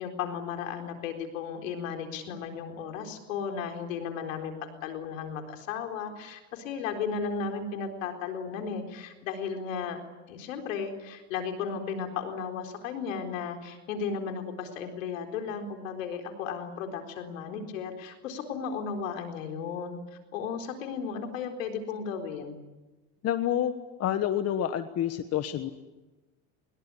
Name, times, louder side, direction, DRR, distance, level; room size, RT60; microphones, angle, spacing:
voice 1, 0.0-10.0 10.3-20.0 20.3-22.6, left 6 dB, 90° left, 5 dB, 4.2 m, -35 dB
voice 2, 23.2-23.7 24.0-25.7, left 10 dB, 40° left, 10 dB, 1.4 m, -28 dB
24.0 x 22.0 x 9.9 m, 1.1 s
supercardioid pair, 120°, 38 cm